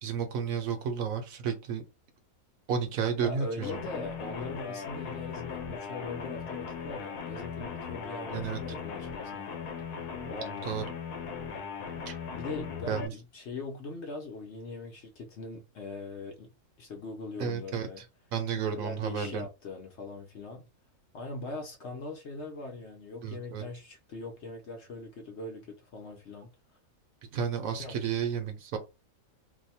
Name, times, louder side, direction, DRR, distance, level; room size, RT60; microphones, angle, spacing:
voice 1, 0.0-1.8 2.7-3.8 8.3-8.6 10.6-10.8 12.1-12.2 12.9-13.1 17.4-18.0 18.3-19.4 23.2-23.6 27.3-28.8, right 7 dB, 70° right, 1.0 m, -32 dB
voice 2, 3.2-9.7 10.3-10.9 12.3-16.5 16.8-18.0 18.8-20.7 21.1-26.5 27.8-28.0, left 3 dB, 55° left, 0.9 m, -41 dB
sound 1, 3.6-13.1, left 6 dB, 85° left, 1.2 m, -38 dB
2.7 x 2.2 x 4.1 m
omnidirectional pair, 1.6 m